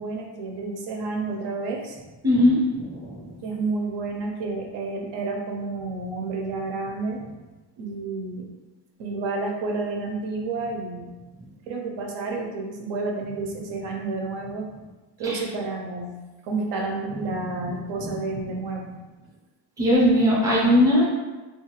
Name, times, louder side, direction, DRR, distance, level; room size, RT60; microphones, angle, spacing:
voice 1, 0.0-2.0 3.4-7.2 7.8-8.5 9.0-11.1 11.7-14.7 15.2-16.1 16.4-18.9, right 3 dB, 70° right, 1 dB, 0.6 m, -30 dB
voice 2, 2.2-3.3 15.2-15.4 18.0-18.1 18.5-18.6 19.8-21.1, left 1 dB, 10° right, -5 dB, 0.6 m, -20 dB
2.5 x 2.4 x 3.0 m, 1.2 s
cardioid pair, 145°, 44 cm